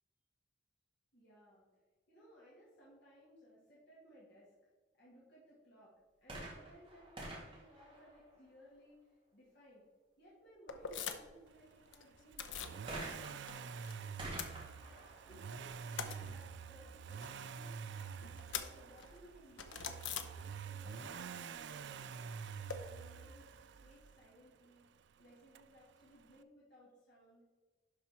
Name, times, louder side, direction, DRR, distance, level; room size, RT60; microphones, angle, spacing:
voice 1, 1.1-1.6 2.1-4.5 5.0-5.9 6.2-9.9 10.2-14.1 15.2-22.4 22.9-23.5 23.8-24.8 25.2-27.5, equal, 55° left, -7 dB, 2.4 m, -62 dB
sound 1, 6.2-8.8 12.9-16.5 17.3-17.4, right 1 dB, 25° right, 2.3 m, -49 dB
sound 2, 10.7-11.5 11.7-12.8 13.1-13.9 14.2-15.2 15.5-20.9 21.2-22.8, left 7 dB, 70° left, 0.7 m, -46 dB
Accelerating revving vroom, 12.3-24.2 25.5-25.6, right 6 dB, 60° right, 0.3 m, -47 dB
11.5 x 4.4 x 4.4 m, 1.3 s
head